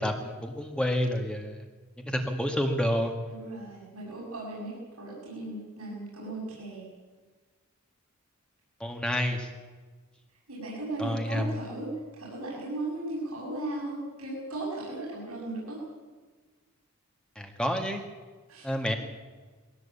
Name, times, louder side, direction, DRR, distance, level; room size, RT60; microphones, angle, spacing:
voice 1, 0.0-1.6 2.0-3.1 8.8-9.5 11.0-11.5 17.4-18.0 18.6-18.9, equal, 5° left, 3 dB, 1.9 m, -29 dB
voice 2, 3.3-6.9 10.5-15.8 18.5-18.7, right 2 dB, 90° right, -4 dB, 7.4 m, -36 dB
22.0 x 17.0 x 8.5 m, 1.4 s
head